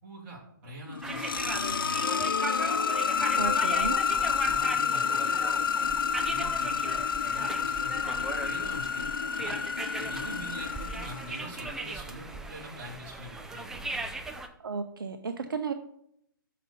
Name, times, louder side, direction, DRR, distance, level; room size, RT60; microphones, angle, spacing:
voice 1, 0.0-2.2 3.0-3.5 4.1-5.4 5.8-6.0 6.2-9.1 9.4-14.3, right 1 dB, 40° right, -3 dB, 3.1 m, -45 dB
sound 1, 0.9-11.6, left 6 dB, 90° left, 0.4 m, -29 dB
sound 2, 1.0-14.5, right 2 dB, 5° right, 0.4 m, -38 dB
voice 2, 3.4-4.0 14.6-15.7, right 5 dB, 80° right, 7 dB, 0.7 m, -33 dB
6.5 x 5.9 x 5.4 m, 0.73 s
hypercardioid pair, 145°, 11 cm